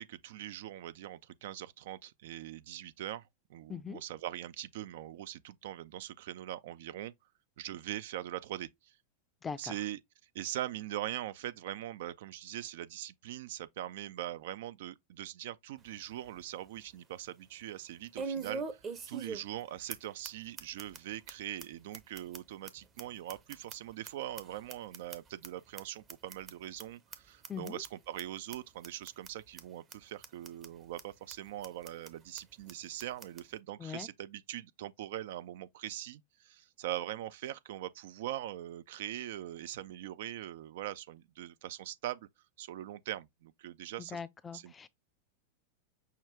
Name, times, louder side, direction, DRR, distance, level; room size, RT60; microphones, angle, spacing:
voice 1, 0.0-7.1 7.6-8.9 9.6-10.0 10.3-42.3 42.6-44.2 44.5-44.7, right 13 dB, 55° right, 0.3 m, -42 dB
voice 2, 3.7-4.0 9.4-9.6 27.5-27.8 33.8-34.1 44.1-44.9, left 6 dB, 15° left, 0.4 m, -41 dB
sound 1, 15.8-15.9 16.4-16.5 18.1-19.6 19.9-20.0 20.2-20.3 20.6-21.0 21.3-21.4 21.6-21.7 21.9-24.1 24.4-25.5 25.8-25.9 26.1-26.5 26.8-26.9 27.1-27.2 27.4-27.9 28.2-28.3 28.5-28.6 28.8-29.3 29.6-29.7 29.9-30.0 30.2-30.7 31.0-31.1 31.3-31.4 31.6-32.1 32.4-32.5 32.7-32.8 33.0-33.4, right 5 dB, 25° right, 0.7 m, -41 dB
5.7 x 2.3 x 3.4 m
figure-of-eight pair, 90°, 0 cm